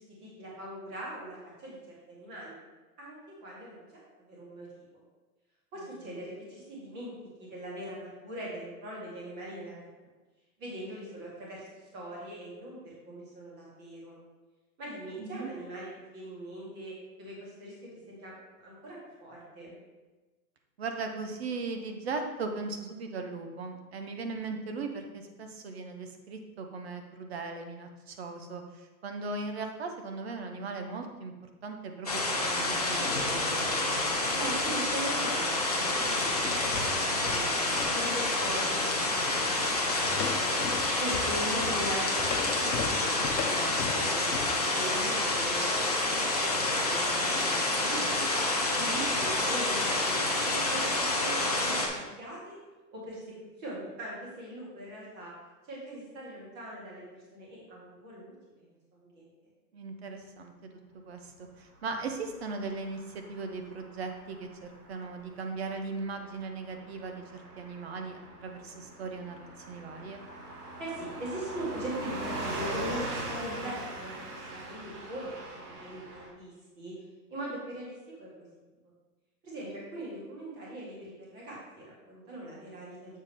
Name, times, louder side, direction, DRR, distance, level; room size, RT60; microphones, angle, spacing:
voice 1, 0.0-2.5 3.0-3.8 4.2-4.8 5.7-7.1 7.4-9.9 10.6-11.7 11.9-14.2 14.8-19.8 34.3-37.5 37.9-40.6 41.0-44.4 44.7-45.8 46.1-48.5 49.2-52.6 52.9-53.2 53.6-55.3 55.7-58.7 58.9-59.2 70.8-76.9 77.3-78.5 79.4-83.2, right 1 dB, 20° right, -5 dB, 2.0 m, -41 dB
voice 2, 5.8-6.2 15.2-15.5 20.8-31.3 31.6-33.7 48.8-49.1 59.7-60.5 60.9-70.2, right 4 dB, 40° right, 5 dB, 0.8 m, -38 dB
sound 1, 32.1-51.9, left 2 dB, 30° left, 0.4 m, -28 dB
sound 2, 36.4-38.6 39.0-39.2 39.6-39.8 40.1-44.7, left 6 dB, 90° left, 1.0 m, -38 dB
Car passing by / Truck, 61.9-76.3, right 2 dB, 70° right, 1.9 m, -41 dB
7.4 x 6.1 x 3.5 m, 1.2 s
hypercardioid pair, 170°, 48 cm